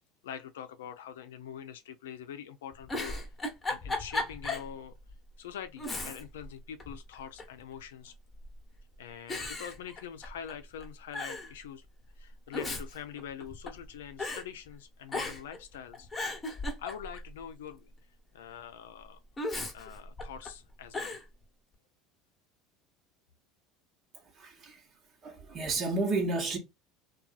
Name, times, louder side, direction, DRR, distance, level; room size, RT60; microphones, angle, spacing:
voice 1, 0.2-3.2 3.7-4.9 5.4-8.1 9.0-11.9 12.2-16.1 16.8-17.9 18.3-19.2 19.7-21.2, left 8 dB, 90° left, 0.4 m, -44 dB
Giggle, 2.7-4.7 5.1-5.2 5.8-6.5 6.8-7.6 8.4-8.8 9.3-10.5 10.8-10.9 11.1-11.5 12.3-13.9 14.2-14.4 15.1-15.6 15.9-17.3 19.4-20.5 20.9-21.2, left 2 dB, 20° left, 0.9 m, -36 dB
voice 2, 24.3-24.8 25.2-26.6, right 3 dB, 45° right, 1.0 m, -31 dB
2.6 x 2.3 x 2.4 m
supercardioid pair, 95°, 0 cm